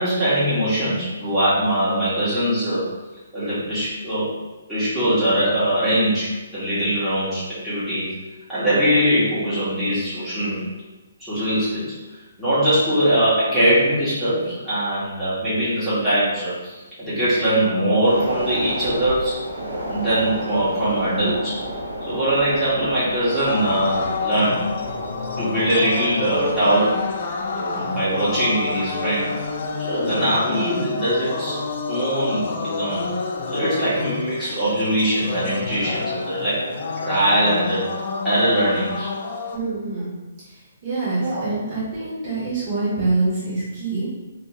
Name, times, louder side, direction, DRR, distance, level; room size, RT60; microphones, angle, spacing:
voice 1, 0.0-2.9 3.3-4.3 4.7-8.1 8.5-10.7 11.2-12.0 12.4-19.4 19.9-21.6 22.1-24.7 25.4-27.0 27.5-29.3 29.8-31.6 31.9-33.1 33.5-36.7 37.0-37.9 38.2-39.1 41.1-41.5, right 1 dB, ahead, -15 dB, 1.3 m, -21 dB
sound 1, 18.0-32.6 32.9-33.1, equal, 80° right, 1.1 m, -33 dB
sound 2, 23.5-39.6, left 4 dB, 45° left, 0.4 m, -29 dB
voice 2, 39.5-40.1 40.8-44.1, right 3 dB, 35° right, -8 dB, 1.4 m, -25 dB
3.3 x 2.5 x 3.1 m, 1.2 s
figure-of-eight pair, 135°, 0 cm